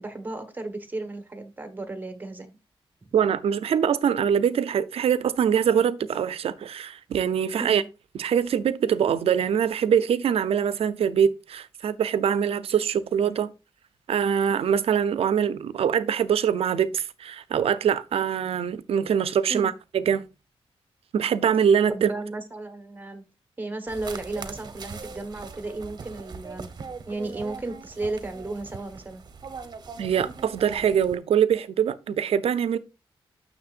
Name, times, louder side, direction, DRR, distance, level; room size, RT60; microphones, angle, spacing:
voice 1, 0.0-2.6 7.6-7.9 19.5-19.7 21.9-23.2 23.6-26.8 27.1-29.2, right 2 dB, 20° right, 1.3 m, -34 dB
voice 2, 3.1-7.8 8.1-13.5 14.1-20.3 21.1-22.1 30.0-32.8, right 8 dB, 85° right, 0.6 m, -23 dB
sound 1, 23.9-31.2, right 5 dB, 45° right, 1.0 m, -41 dB
9.5 x 6.6 x 2.5 m
wide cardioid pair, 155°, 10 cm